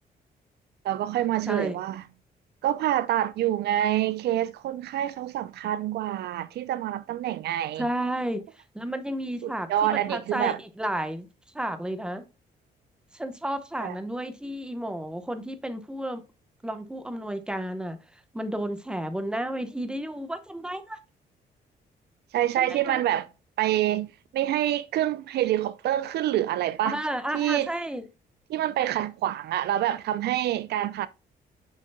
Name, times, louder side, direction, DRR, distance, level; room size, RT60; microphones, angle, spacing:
voice 1, 0.8-2.0 2.6-7.8 9.4-10.6 13.8-13.9 22.3-23.3 23.6-24.1 24.3-27.0 27.3-27.7 28.5-31.1, right 12 dB, 80° right, 0.5 m, -26 dB
voice 2, 1.5-1.8 7.8-11.3 11.5-12.3 13.1-16.2 16.6-21.0 22.6-23.0 26.8-28.0, right 1 dB, 5° right, 0.9 m, -32 dB
7.5 x 6.5 x 2.2 m
cardioid pair, 115°, 17 cm